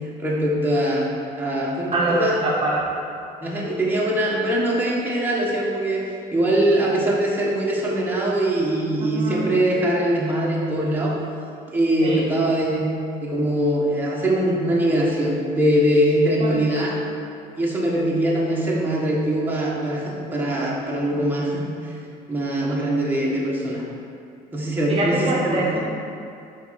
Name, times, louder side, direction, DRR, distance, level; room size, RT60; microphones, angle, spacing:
voice 1, 0.0-2.3 3.4-6.0 6.3-11.2 11.7-12.9 13.2-16.9 17.5-21.9 22.3-23.8 24.5-25.8, right 1 dB, 10° right, -5 dB, 1.5 m, -22 dB
voice 2, 1.9-2.9 9.1-9.5 12.0-12.2 16.4-17.0 24.9-25.8, right 2 dB, 35° right, -5 dB, 1.0 m, -24 dB
5.8 x 4.4 x 5.8 m, 2.5 s
cardioid pair, 110°, 17 cm